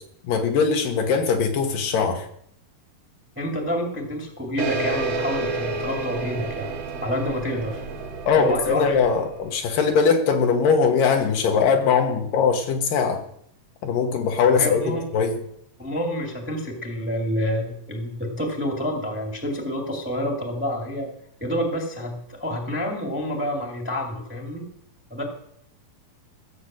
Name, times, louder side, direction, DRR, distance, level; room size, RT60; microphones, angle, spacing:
voice 1, 0.3-2.3 8.3-13.2 13.8-15.4, left 5 dB, 70° left, 4 dB, 2.9 m, -21 dB
voice 2, 3.3-6.7 7.0-7.9 8.3-9.0 14.5-15.1 15.8-21.1 21.4-24.6 25.1-25.2, equal, 5° right, 1 dB, 1.7 m, -28 dB
sound 1, 4.6-9.7, right 3 dB, 90° right, 3.7 m, -30 dB
15.0 x 6.7 x 7.5 m, 0.71 s
omnidirectional pair, 4.1 m